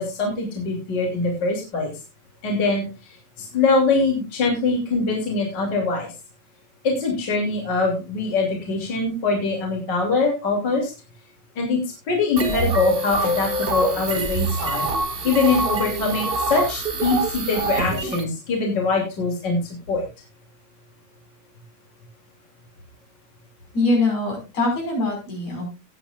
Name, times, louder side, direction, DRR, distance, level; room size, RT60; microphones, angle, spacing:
voice 1, 0.0-1.9 2.4-6.1 6.8-10.9 11.6-11.8 12.1-14.8 15.2-19.6 19.9-20.0, left 3 dB, 35° left, 1 dB, 3.3 m, -23 dB
sound 1, 12.4-18.2, right 2 dB, 85° right, 0.5 m, -25 dB
voice 2, 23.7-25.7, left 2 dB, 70° left, 0 dB, 6.9 m, -23 dB
18.5 x 8.9 x 2.5 m, 0.27 s
omnidirectional pair, 3.4 m